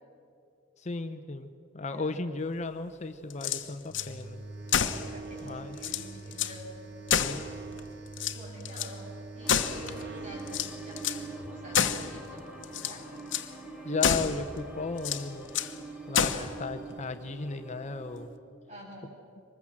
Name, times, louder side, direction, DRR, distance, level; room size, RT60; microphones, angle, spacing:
voice 1, 0.8-4.5 5.4-5.8 7.1-7.6 13.8-15.5 16.1-18.3, left 3 dB, 35° left, 8 dB, 0.8 m, -35 dB
voice 2, 1.8-2.2 4.7-6.6 8.3-13.1 16.3-16.5 18.7-19.1, equal, 35° right, -3 dB, 7.9 m, -47 dB
sound 1, 3.3-4.1 4.7-5.1 5.5-5.6 5.8-6.6 7.1-7.8 8.1-8.9 9.5-10.0 10.5-11.3 11.7-12.1 12.6-13.0 13.3-13.5 14.0-14.4 15.0-15.8 16.1-16.5, left 8 dB, 70° left, 1.0 m, -29 dB
sound 2, 3.9-11.5, right 3 dB, 60° right, 1.2 m, -43 dB
sound 3, 9.4-18.3, right 3 dB, 5° right, 2.8 m, -45 dB
24.0 x 20.5 x 7.4 m, 2.6 s
head